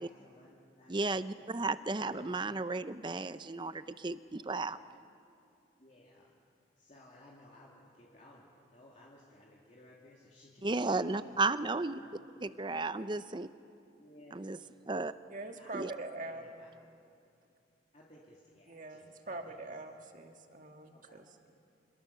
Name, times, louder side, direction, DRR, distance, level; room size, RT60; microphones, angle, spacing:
voice 1, 0.0-0.9 1.9-2.2 2.5-2.6 4.6-4.8 5.8-6.3 6.8-11.4 11.9-12.1 14.0-14.5 15.5-15.9 16.3-16.7 17.9-19.5 20.9-21.2, left 1 dB, 40° left, -4 dB, 2.5 m, -58 dB
voice 2, 0.9-4.8 10.6-12.0 12.4-13.5 14.3-14.6 14.9-15.1 15.7-15.9, right 3 dB, 25° right, 13 dB, 0.6 m, -34 dB
voice 3, 15.3-16.4 18.7-21.5, right 2 dB, 45° right, 4 dB, 1.8 m, -44 dB
26.5 x 22.0 x 6.8 m, 2.5 s
head